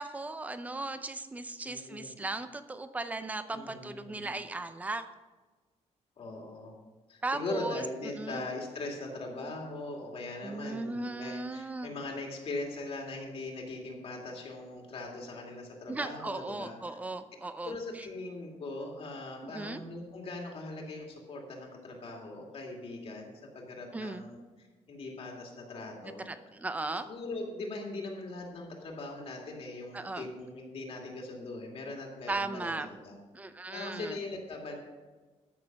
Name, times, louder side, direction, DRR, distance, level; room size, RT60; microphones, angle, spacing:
voice 1, 0.0-5.0 7.2-7.8 8.2-8.4 10.4-11.9 15.9-17.7 19.4-19.8 23.9-24.2 26.0-27.1 29.9-30.3 32.3-32.9 33.3-34.2, right 2 dB, 10° right, 10 dB, 0.5 m, -37 dB
voice 2, 1.6-2.1 3.5-4.3 6.2-6.7 7.1-17.0 17.6-26.2 27.0-33.2 33.7-34.7, left 2 dB, 50° left, 0 dB, 2.3 m, -40 dB
13.0 x 6.6 x 5.9 m, 1.3 s
wide cardioid pair, 165°, 12 cm